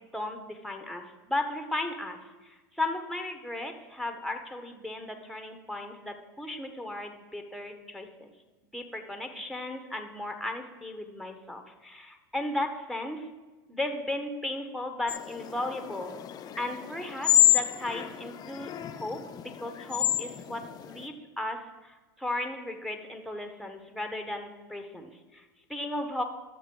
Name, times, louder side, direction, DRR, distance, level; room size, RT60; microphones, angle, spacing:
voice 1, 0.1-2.2 2.4-8.3 8.7-13.3 13.7-16.1 16.6-25.4 25.7-26.2, left 1 dB, ahead, 5 dB, 1.1 m, -35 dB
sound 1, 15.1-21.1, left 12 dB, 35° left, 0.7 m, -28 dB
13.0 x 6.7 x 3.9 m, 1.2 s
hypercardioid pair, 85°, 11 cm